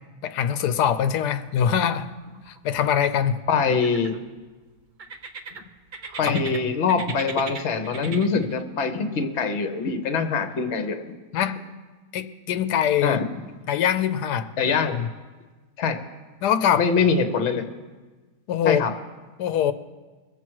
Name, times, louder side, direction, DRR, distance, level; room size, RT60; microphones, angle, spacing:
voice 1, 0.2-2.1 2.5-3.4 6.2-6.3 11.3-11.6 12.1-13.2 13.7-14.5 14.8-15.1 16.4-16.9 18.5-18.8 19.4-19.7, left 9 dB, 90° left, 10 dB, 1.2 m, -23 dB
sound 1, 1.2-1.8 2.0-3.0 3.6-4.4 5.0-6.6 6.9-8.6, right 4 dB, 45° right, 0.6 m, -38 dB
voice 2, 3.5-4.2 6.2-11.0 13.0-13.2 14.6-15.0 15.8-16.0 16.8-17.7 18.6-18.9, left 5 dB, 50° left, 8 dB, 1.1 m, -23 dB
22.0 x 7.4 x 4.6 m, 1.3 s
omnidirectional pair, 1.7 m